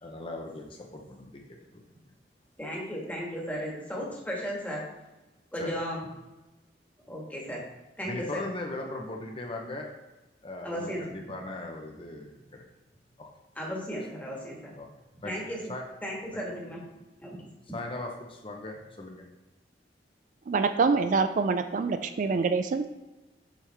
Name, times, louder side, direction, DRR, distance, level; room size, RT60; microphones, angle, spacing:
voice 1, 0.0-1.8 5.6-5.7 8.0-9.9 10.4-12.6 13.2-13.3 14.7-14.9 15.2-15.3 15.7-15.8 16.3-16.4 17.7-19.2, left 2 dB, 30° left, 1 dB, 0.7 m, -39 dB
voice 2, 2.6-4.9 5.5-6.1 7.1-7.6 8.0-8.4 10.6-11.0 13.6-14.7 15.2-15.7 16.0-16.8 17.2-17.3, equal, 10° left, -3 dB, 1.5 m, -35 dB
voice 3, 20.5-22.9, right 4 dB, 45° right, 9 dB, 0.3 m, -25 dB
7.4 x 5.4 x 3.3 m, 1.1 s
head